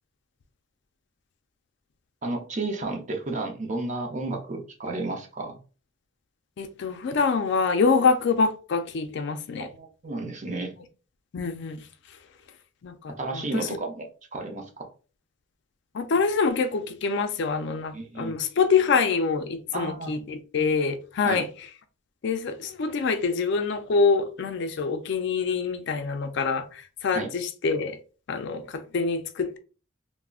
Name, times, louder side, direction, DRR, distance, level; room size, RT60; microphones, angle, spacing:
voice 1, 2.2-5.6 9.6-10.7 13.2-14.9 17.9-18.3 19.7-20.1 21.2-21.4 27.1-27.3, right 2 dB, 40° right, 0.6 m, -32 dB
voice 2, 6.6-9.7 11.3-11.8 12.8-13.7 15.9-21.5 22.2-28.0 28.3-29.6, left 5 dB, 60° left, 0.4 m, -25 dB
3.5 x 2.0 x 2.3 m
head